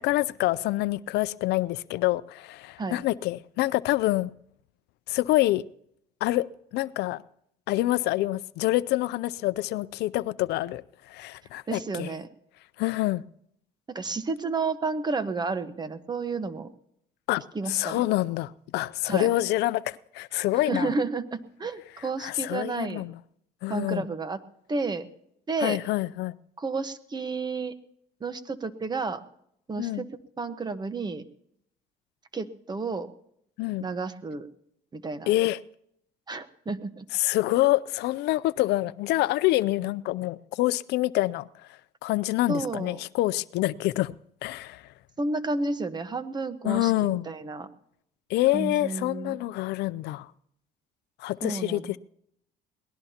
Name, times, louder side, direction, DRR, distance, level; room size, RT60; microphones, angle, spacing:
voice 1, 0.0-4.3 5.1-5.6 6.2-6.4 6.7-7.2 7.7-10.8 11.1-12.1 12.8-13.2 17.3-17.4 17.7-20.9 22.2-23.1 23.6-24.0 25.6-26.3 29.8-30.0 33.6-33.9 35.3-35.6 37.1-41.5 42.0-44.1 44.4-44.8 46.6-47.3 48.3-50.3 51.2-52.0, left 17 dB, 80° left, 17 dB, 0.5 m, -26 dB
voice 2, 11.7-12.3 13.9-16.7 17.5-18.1 19.0-19.3 20.7-23.0 23.7-24.4 24.7-25.0 25.5-25.8 26.6-27.7 28.2-29.2 29.7-30.1 30.4-31.2 32.3-33.1 33.8-34.5 34.9-35.3 36.3-37.1 42.5-43.0 45.2-47.7 48.5-49.4 51.4-52.0, right 3 dB, 25° right, 11 dB, 1.2 m, -31 dB
22.5 x 18.5 x 2.9 m, 0.72 s
cardioid pair, 110°, 17 cm